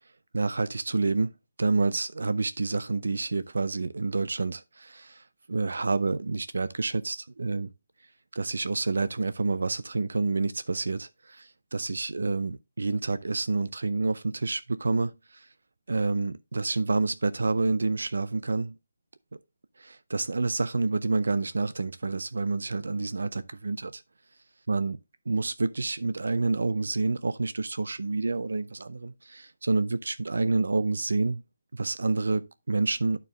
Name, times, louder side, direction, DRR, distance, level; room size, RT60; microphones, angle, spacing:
voice 1, 0.3-1.3 1.6-5.2 5.5-7.7 8.4-15.5 15.9-18.7 19.8-24.0 24.7-25.0 25.3-31.4 31.7-33.2, right 3 dB, 75° right, 0.5 m, -28 dB
10.5 x 4.6 x 3.4 m
hypercardioid pair, 180°, 0 cm